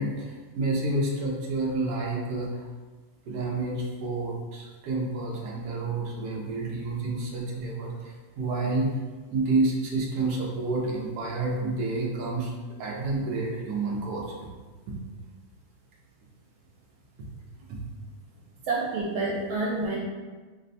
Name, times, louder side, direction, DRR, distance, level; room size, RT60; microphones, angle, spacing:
voice 1, 0.0-2.6 3.3-8.9 9.3-12.5 12.8-14.2 17.7-17.8, right 2 dB, 65° right, -2 dB, 1.0 m, -29 dB
voice 2, 18.7-20.0, right 3 dB, 90° right, -4 dB, 1.4 m, -28 dB
3.3 x 2.1 x 4.0 m, 1.3 s
omnidirectional pair, 2.2 m